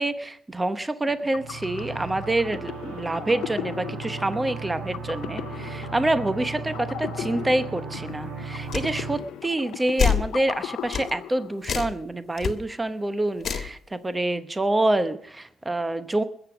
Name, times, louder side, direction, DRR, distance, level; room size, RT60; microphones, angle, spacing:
voice 1, 0.0-16.2, right 1 dB, 15° right, 11 dB, 1.0 m, -27 dB
sound 1, 1.0-11.9, left 11 dB, 85° left, 0.6 m, -38 dB
sound 2, 1.3-9.2, right 4 dB, 70° right, 2.6 m, -36 dB
sound 3, 8.7-8.9 10.0-10.3 10.9-11.1 11.6-12.0 12.4-12.5 13.4-13.7, left 7 dB, 55° left, 1.6 m, -25 dB
20.5 x 8.0 x 6.0 m, 0.65 s
cardioid pair, 90°, 0 cm